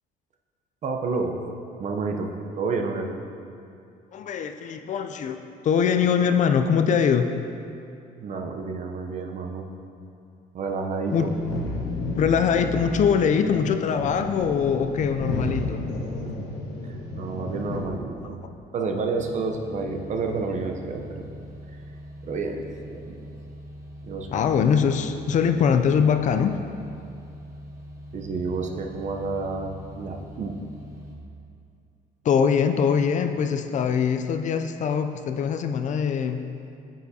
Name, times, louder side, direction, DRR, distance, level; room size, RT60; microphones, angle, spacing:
voice 1, 0.8-1.4 1.8-3.1 8.2-9.7 10.5-11.3 16.2-16.5 16.8-18.4 18.7-21.3 22.2-23.2 24.0-24.3 28.1-30.5, right 4 dB, 45° right, 3 dB, 0.7 m, -30 dB
voice 2, 4.1-7.3 11.1-11.3 12.2-15.9 24.3-26.6 32.2-36.4, left 7 dB, 45° left, 8 dB, 0.4 m, -22 dB
sound 1, 11.1-17.8, left 2 dB, 85° left, 1.2 m, -32 dB
sound 2, 19.1-31.2, equal, 15° right, 1.1 m, -42 dB
9.0 x 6.7 x 2.8 m, 2.5 s
cardioid pair, 110°, 17 cm